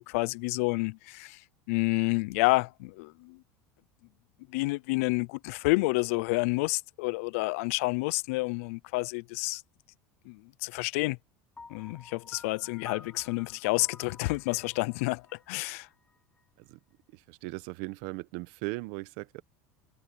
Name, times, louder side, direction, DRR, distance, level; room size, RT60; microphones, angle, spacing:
voice 1, 0.0-1.4 1.7-3.4 4.5-9.6 10.3-11.2 11.7-15.9, left 25 dB, 80° left, 0.5 m, -29 dB
Piano, 11.6-16.4, left 3 dB, 15° left, 7.4 m, -51 dB
voice 2, 17.1-19.4, right 23 dB, 70° right, 1.4 m, -38 dB
supercardioid pair, 100°, 8 cm